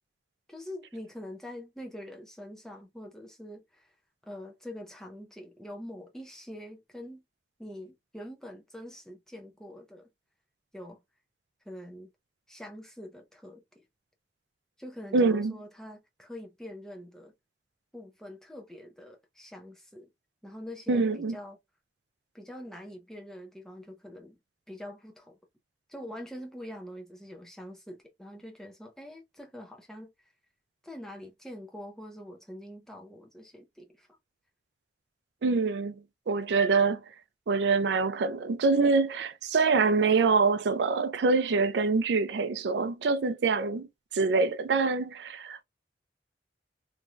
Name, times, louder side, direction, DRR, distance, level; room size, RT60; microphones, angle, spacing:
voice 1, 0.5-3.9 4.2-7.2 7.6-10.1 10.7-11.0 11.6-12.1 12.5-13.8 14.8-17.3 17.9-20.1 20.4-21.6 22.3-24.4 24.7-25.4 25.9-30.1 30.8-34.1, left 1 dB, 5° left, 0.6 m, -44 dB
voice 2, 15.1-15.5 20.9-21.4 35.4-35.9 36.3-37.0 37.5-43.9 44.1-45.6, right 4 dB, 80° right, 0.4 m, -25 dB
3.1 x 2.6 x 2.2 m
head